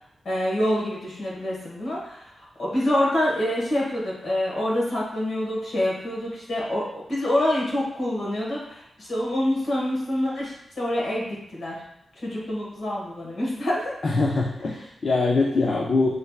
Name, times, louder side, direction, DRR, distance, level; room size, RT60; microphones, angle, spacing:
voice 1, 0.2-11.7 12.2-13.9, left 1 dB, 65° left, -4 dB, 1.7 m, -26 dB
voice 2, 14.0-16.2, left 3 dB, 45° left, -3 dB, 0.5 m, -23 dB
6.5 x 3.2 x 2.4 m, 0.77 s
wide cardioid pair, 160°, 0 cm